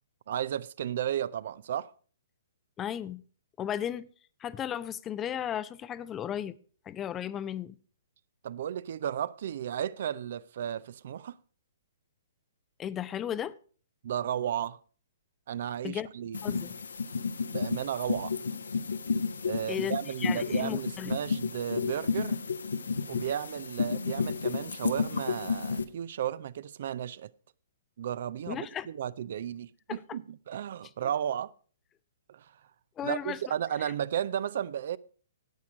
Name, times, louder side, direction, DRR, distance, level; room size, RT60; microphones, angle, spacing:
voice 1, 0.3-1.9 8.4-11.3 14.0-14.8 15.5-16.4 17.5-18.3 19.5-22.4 23.1-27.3 28.0-31.5 32.3-32.5 33.0-35.0, right 10 dB, 50° right, 0.4 m, -34 dB
voice 2, 2.8-3.2 3.6-4.1 4.4-6.6 6.9-7.8 12.8-13.5 15.8-16.1 16.4-16.7 19.7-21.2 28.5-28.9 29.9-30.0 31.0-31.1 33.0-33.5 33.8-33.9, left 10 dB, 20° left, 0.4 m, -35 dB
sound 1, 16.3-25.8, left 5 dB, 70° left, 0.8 m, -32 dB
10.0 x 8.4 x 5.0 m
figure-of-eight pair, 120°, 0 cm